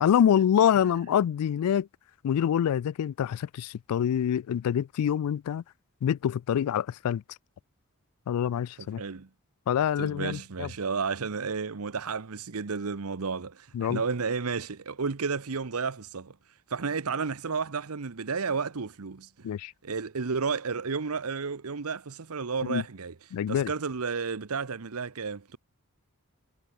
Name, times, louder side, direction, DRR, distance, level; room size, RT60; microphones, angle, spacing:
voice 1, 0.0-1.9 2.2-5.6 6.0-7.2 8.3-9.0 9.7-10.7 13.7-14.0 19.4-19.7 22.7-22.8 23.3-23.7, left 9 dB, 80° left, 0.3 m, -26 dB
voice 2, 8.8-9.3 10.0-19.5 19.8-23.1 23.5-25.6, right 5 dB, 75° right, 0.9 m, -32 dB
head